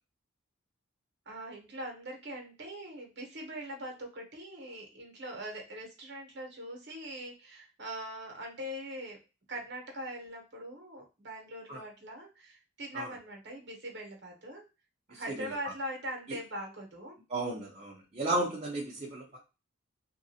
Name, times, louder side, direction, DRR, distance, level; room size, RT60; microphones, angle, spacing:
voice 1, 1.3-9.2 9.5-14.7 15.1-17.2 18.2-18.3, right 1 dB, 55° right, 2 dB, 1.0 m, -42 dB
voice 2, 15.1-15.7 17.3-19.4, right 2 dB, 30° right, -3 dB, 0.5 m, -34 dB
3.1 x 2.5 x 2.7 m, 0.29 s
head